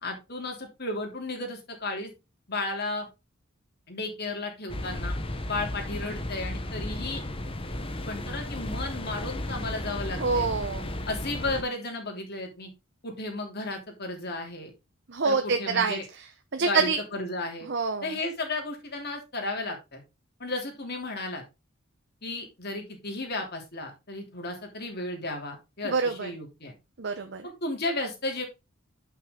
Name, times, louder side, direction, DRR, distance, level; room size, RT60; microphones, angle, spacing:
voice 1, 0.0-2.1 2.5-3.1 3.9-5.2 5.5-7.2 8.0-10.5 11.1-12.7 13.0-14.7 15.2-16.0 16.6-17.7 18.0-20.0 20.4-21.4 22.2-26.7 27.4-28.5, left 2 dB, 50° left, 2 dB, 3.2 m, -34 dB
sound 1, 4.7-11.6, left 1 dB, 25° left, 1.1 m, -34 dB
voice 2, 10.2-10.9 15.1-16.2 16.5-17.0 17.7-18.1 25.8-26.3 27.0-27.5, right 4 dB, 55° right, 7 dB, 0.9 m, -26 dB
9.5 x 5.9 x 3.8 m, 0.25 s
head